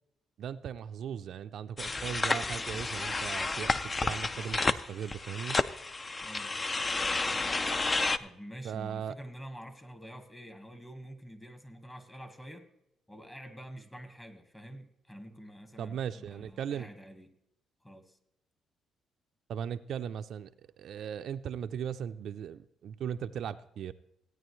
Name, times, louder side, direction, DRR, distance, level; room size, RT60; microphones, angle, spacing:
voice 1, 0.4-3.8 4.0-5.6 8.6-9.2 15.8-16.9 19.5-20.5 20.8-23.9, right 8 dB, 70° right, 0.4 m, -38 dB
sound 1, 1.8-8.2, left 3 dB, 30° left, 0.5 m, -31 dB
voice 2, 6.2-6.5 8.2-12.7 13.1-17.3 17.8-18.2, equal, 15° left, 1.5 m, -47 dB
16.5 x 9.2 x 3.1 m
cardioid pair, 80°, 0 cm